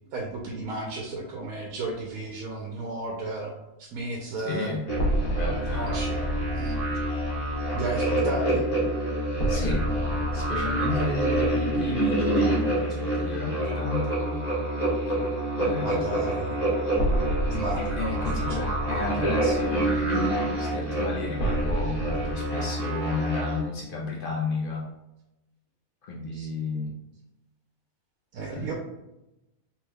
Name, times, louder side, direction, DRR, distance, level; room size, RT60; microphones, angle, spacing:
voice 1, 0.1-3.5 3.8-4.7 5.7-6.8 7.7-8.7 15.8-16.6 17.5-18.0 18.5-18.6 26.3-26.5 28.3-28.7, right 3 dB, 85° right, -1 dB, 1.1 m, -33 dB
voice 2, 4.4-4.9 5.4-5.9 9.5-9.9 10.3-14.4 15.6-16.1 18.0-24.9 26.0-27.0 28.5-28.7, left 3 dB, 60° left, -3 dB, 0.5 m, -32 dB
sound 1, 4.9-12.7 13.0-13.1 16.9-22.4, right 1 dB, 85° left, 1.3 m, -32 dB
sound 2, 4.9-23.6, right 1 dB, 30° left, 1.2 m, -27 dB
3.3 x 3.0 x 2.2 m, 0.92 s
omnidirectional pair, 1.5 m